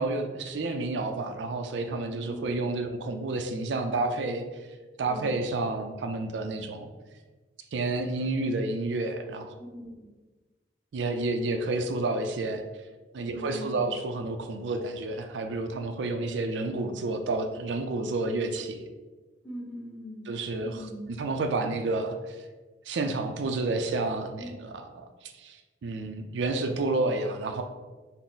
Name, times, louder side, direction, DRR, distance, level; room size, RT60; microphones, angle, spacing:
voice 1, 0.0-4.7 5.0-6.9 7.7-9.5 10.9-12.6 13.1-18.9 20.3-22.4 22.8-27.6, right 2 dB, 85° right, 6 dB, 0.4 m, -30 dB
voice 2, 2.1-2.5 5.0-5.3 9.6-9.8 13.3-13.8 19.4-20.3 20.6-21.1 24.4-24.6, equal, 5° left, -6 dB, 1.5 m, -41 dB
5.9 x 2.0 x 3.8 m, 1.3 s
head